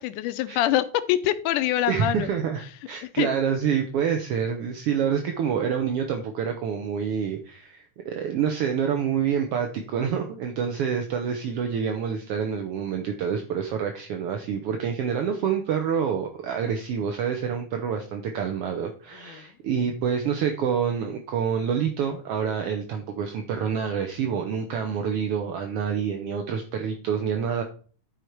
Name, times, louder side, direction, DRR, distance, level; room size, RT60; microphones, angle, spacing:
voice 1, 0.0-2.3 3.2-3.3 19.2-19.5, left 13 dB, 90° left, 12 dB, 2.2 m, -25 dB
voice 2, 1.9-27.6, right 7 dB, 70° right, 5 dB, 1.5 m, -27 dB
11.5 x 5.0 x 4.5 m, 0.41 s
omnidirectional pair, 3.6 m